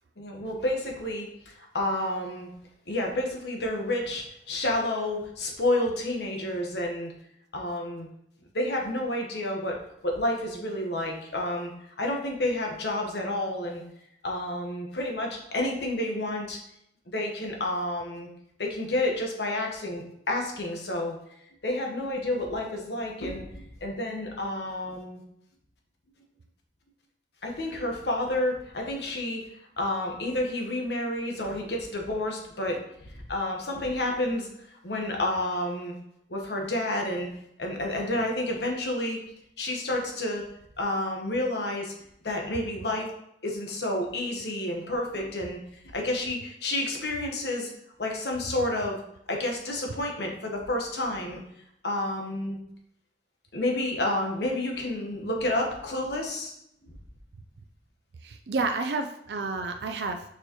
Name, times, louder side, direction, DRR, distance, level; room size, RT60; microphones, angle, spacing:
voice 1, 0.2-2.5 2.9-7.1 7.5-8.1 8.5-9.8 10.0-11.7 12.0-13.8 14.2-16.6 17.1-18.3 18.6-21.2 21.6-25.2 27.4-29.4 29.8-32.8 33.1-34.5 34.8-35.9 36.3-37.3 37.6-39.2 39.6-40.4 40.8-41.9 42.2-43.1 43.4-45.6 45.9-47.7 48.0-49.0 49.3-51.4 51.8-52.6 53.5-56.5, left 1 dB, 75° left, 1 dB, 1.2 m, -30 dB
voice 2, 58.2-60.2, right 3 dB, 75° right, 5 dB, 0.4 m, -30 dB
6.6 x 4.7 x 3.0 m, 0.76 s
head